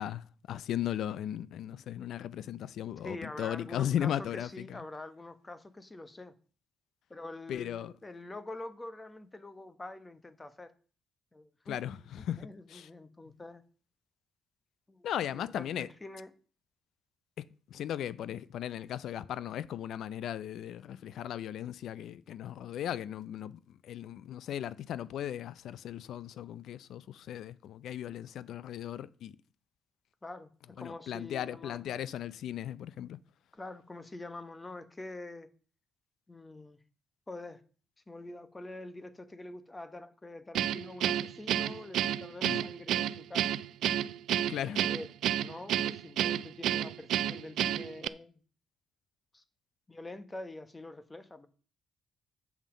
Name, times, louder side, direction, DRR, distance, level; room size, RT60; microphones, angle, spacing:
voice 1, 0.0-4.8 7.5-7.9 11.7-12.9 15.0-15.9 17.7-29.4 30.8-33.2 42.4-42.6 44.5-44.8, left 10 dB, 75° left, 0.4 m, -37 dB
voice 2, 3.0-6.3 7.1-10.7 11.3-12.0 12.3-13.6 14.9-15.1 15.3-16.3 30.2-32.1 33.5-35.5 36.3-36.8 37.3-37.6 38.1-43.5 44.5-45.1 45.4-48.4 49.3-49.4 49.9-51.5, left 2 dB, 20° left, 1.1 m, -45 dB
Guitar, 40.5-48.1, right 11 dB, 80° right, 0.4 m, -30 dB
7.1 x 5.5 x 7.4 m
cardioid pair, 90°, 0 cm